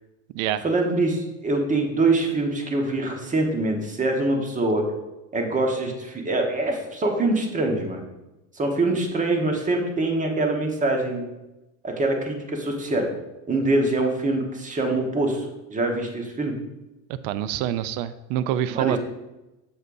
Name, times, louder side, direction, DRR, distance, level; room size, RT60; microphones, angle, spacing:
voice 1, 0.6-4.9 5.3-8.0 8.6-11.2 11.8-13.1 13.5-16.6 18.7-19.0, right 2 dB, 20° right, 2 dB, 1.2 m, -24 dB
voice 2, 17.2-19.0, right 11 dB, 80° right, 14 dB, 0.5 m, -26 dB
8.0 x 6.6 x 2.6 m, 1.0 s
supercardioid pair, 125°, 38 cm